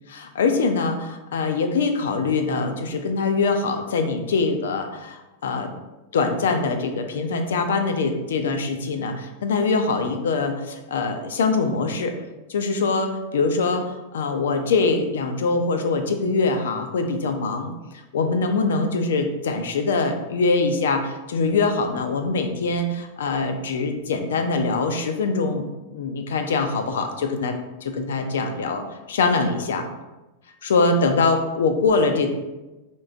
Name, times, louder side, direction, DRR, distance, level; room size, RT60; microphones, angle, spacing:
voice 1, 0.1-5.7 6.1-12.1 12.5-25.6 25.9-27.6 27.8-29.9 30.6-32.3, left 4 dB, 90° left, 6 dB, 0.5 m, -23 dB
3.8 x 3.6 x 2.4 m, 1.1 s
supercardioid pair, 135°, 0 cm